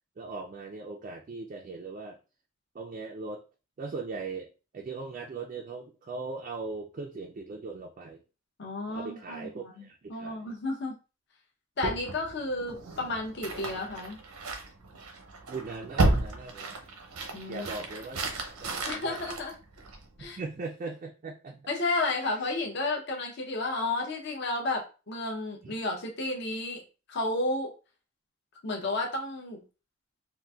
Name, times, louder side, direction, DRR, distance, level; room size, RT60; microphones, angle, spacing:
voice 1, 0.2-2.2 2.7-3.4 3.8-8.2 8.9-10.5 15.5-16.8 17.5-19.3 20.2-21.6 25.6-25.8, right 3 dB, 35° right, 1 dB, 0.3 m, -39 dB
voice 2, 8.6-11.0 11.8-14.2 17.3-17.7 18.8-19.6 20.2-20.4 21.7-26.8 27.1-27.7 28.6-29.6, left 2 dB, 50° left, 1 dB, 0.6 m, -32 dB
sound 1, 11.8-20.2, right 2 dB, 90° right, 0.7 m, -33 dB
3.8 x 2.5 x 2.3 m, 0.32 s
head